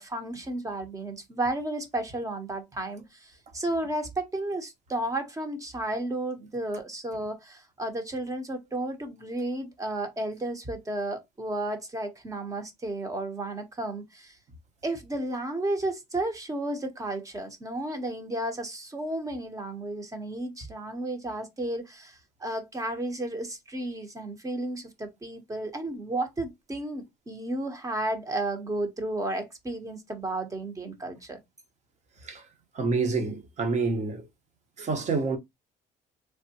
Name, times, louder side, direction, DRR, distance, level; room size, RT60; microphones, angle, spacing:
voice 1, 0.0-14.4 14.8-31.4, right 1 dB, 20° right, 0.8 m, -33 dB
voice 2, 32.7-34.2 34.8-35.4, right 4 dB, 45° right, 0.9 m, -27 dB
3.4 x 2.2 x 2.7 m
cardioid pair, 110°, 17 cm